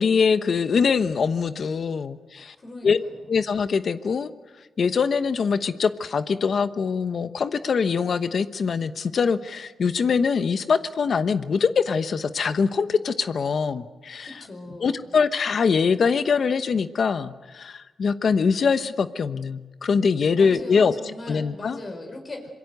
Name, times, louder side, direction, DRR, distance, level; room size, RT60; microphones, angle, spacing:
voice 1, 0.0-2.5 2.8-3.0 3.3-4.3 4.8-14.4 14.8-20.9 21.3-21.8, left 5 dB, 60° left, 11 dB, 1.0 m, -23 dB
voice 2, 2.6-3.1 14.2-15.0 20.4-22.5, left 2 dB, 40° left, 4 dB, 4.7 m, -39 dB
26.0 x 22.5 x 8.0 m, 1.2 s
cardioid pair, 80°, 0 cm